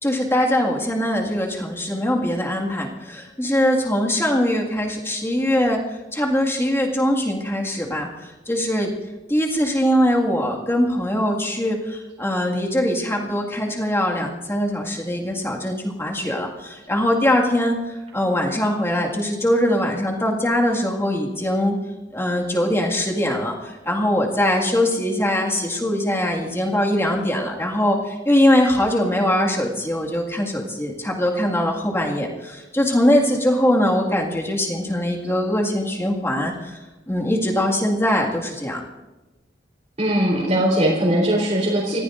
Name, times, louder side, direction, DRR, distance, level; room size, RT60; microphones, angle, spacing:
voice 1, 0.0-8.9 9.3-21.8 22.1-36.8 37.1-38.8, left 1 dB, 15° left, -1 dB, 2.0 m, -22 dB
voice 2, 40.0-42.0, right 1 dB, 35° right, -4 dB, 3.9 m, -20 dB
29.0 x 15.0 x 2.6 m, 1.1 s
head